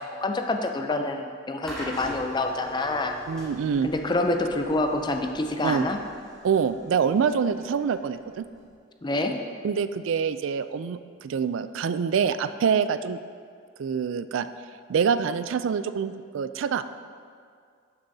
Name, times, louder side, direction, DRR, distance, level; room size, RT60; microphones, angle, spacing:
voice 1, 0.0-3.2 3.8-6.0 9.0-9.3, left 2 dB, 20° left, 5 dB, 0.5 m, -27 dB
sound 1, 1.6-8.7, equal, 5° left, 2.0 m, -43 dB
voice 2, 3.3-3.9 5.6-5.9 6.4-8.5 9.6-13.2 13.8-14.5 14.9-16.8, right 6 dB, 70° right, 12 dB, 0.3 m, -25 dB
11.5 x 6.8 x 2.7 m, 2.2 s
head